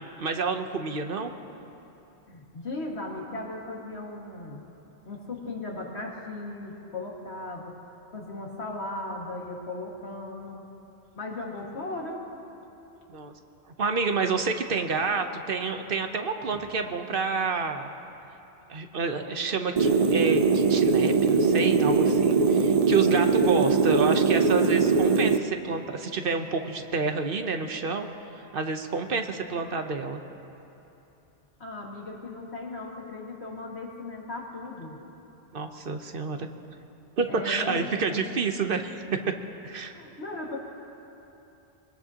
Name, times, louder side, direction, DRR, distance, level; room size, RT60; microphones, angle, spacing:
voice 1, 0.2-1.3 13.1-13.3 13.8-17.9 18.7-28.1 28.3-30.2 35.5-36.5 37.2-39.3 39.6-40.0, right 4 dB, 60° right, 6 dB, 1.0 m, -29 dB
voice 2, 2.3-4.6 5.0-7.8 8.1-10.6 11.2-12.3 16.5-16.6 31.6-35.0 37.3-38.2 39.9-40.6, left 2 dB, 90° left, -2 dB, 2.3 m, -37 dB
sound 1, 19.8-25.4, right 4 dB, 45° right, 0.6 m, -21 dB
24.5 x 20.0 x 2.9 m, 2.9 s
omnidirectional pair, 1.1 m